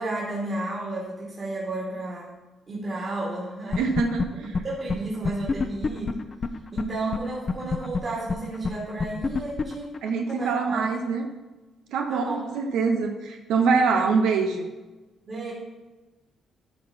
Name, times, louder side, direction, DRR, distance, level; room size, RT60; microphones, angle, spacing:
voice 1, 0.0-2.3 2.7-3.9 4.4-6.2 6.7-10.0 10.3-10.8 12.1-12.4 15.2-15.5, right 2 dB, 45° right, -5 dB, 2.7 m, -32 dB
sound 1, 3.7-4.3 4.5-4.6 4.9-5.0 5.2-6.8 7.1-7.2 7.5-10.4, left 4 dB, 35° left, 0.7 m, -26 dB
voice 2, 3.8-4.5 10.0-11.3 11.9-14.7, right 5 dB, 85° right, 4 dB, 0.8 m, -24 dB
12.5 x 4.2 x 6.0 m, 1.2 s
cardioid pair, 90°, 0 cm